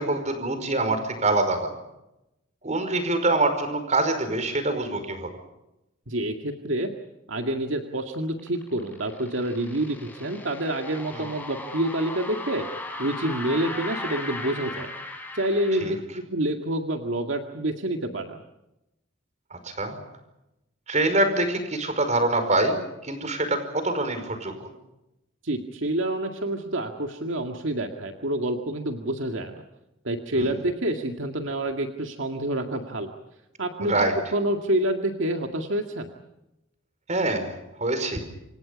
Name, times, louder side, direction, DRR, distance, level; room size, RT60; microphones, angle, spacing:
voice 1, 0.0-1.7 2.6-5.3 11.1-11.2 15.8-16.0 19.5-20.0 20.9-24.7 30.3-30.6 33.8-34.2 37.1-38.2, right 2 dB, 35° right, 9 dB, 5.2 m, -25 dB
voice 2, 6.1-6.9 7.3-12.6 13.0-14.9 15.3-18.4 25.4-29.6 30.0-33.1 33.6-33.9 34.3-36.1, right 1 dB, 75° right, 4 dB, 2.1 m, -28 dB
sound 1, 8.1-15.9, left 2 dB, 10° left, 5.6 m, -37 dB
28.0 x 26.5 x 5.3 m, 0.91 s
head